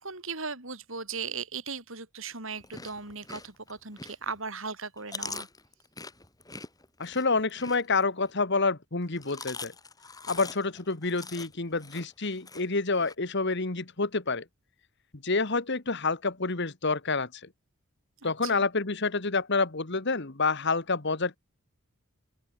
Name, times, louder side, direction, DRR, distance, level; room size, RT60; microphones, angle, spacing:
voice 1, 0.0-5.5 18.2-18.6, right 5 dB, 65° right, 5.8 m, -38 dB
Chewing mastication, 2.5-4.4 4.8-8.3 9.0-13.1, left 4 dB, 15° left, 7.6 m, -43 dB
voice 2, 7.0-9.7 10.3-14.4 15.2-17.5 18.2-21.4, left 3 dB, 55° left, 1.7 m, -28 dB
open air
head